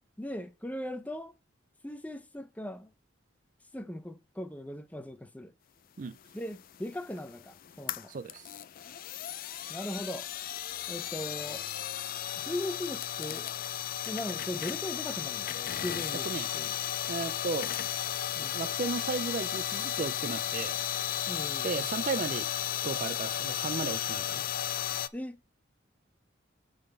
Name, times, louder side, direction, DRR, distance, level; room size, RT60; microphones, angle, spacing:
voice 1, 0.2-1.4 1.8-2.9 3.7-5.5 6.3-8.1 9.7-10.3 10.9-11.7 12.4-13.5 14.1-16.3 16.5-16.7 18.4-18.6 21.3-21.7 25.1-25.4, left 1 dB, 10° left, 0.6 m, -39 dB
sound 1, 6.3-25.1, left 10 dB, 50° left, 0.4 m, -34 dB
voice 2, 8.1-8.5 16.2-16.5 17.1-17.7 18.5-20.8 21.6-22.5 22.8-24.4, right 4 dB, 40° right, 0.4 m, -35 dB
8.4 x 4.1 x 7.0 m
head